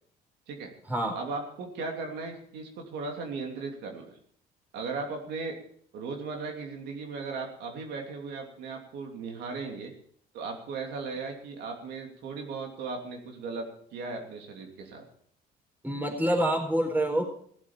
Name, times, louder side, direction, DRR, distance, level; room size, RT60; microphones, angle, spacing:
voice 1, 1.1-4.2 4.7-5.5 5.9-9.9 10.3-15.0, right 4 dB, 80° right, 2 dB, 3.0 m, -37 dB
voice 2, 15.8-17.2, right 1 dB, 10° right, 3 dB, 4.3 m, -26 dB
17.0 x 7.9 x 7.4 m, 0.63 s
cardioid pair, 110°, 17 cm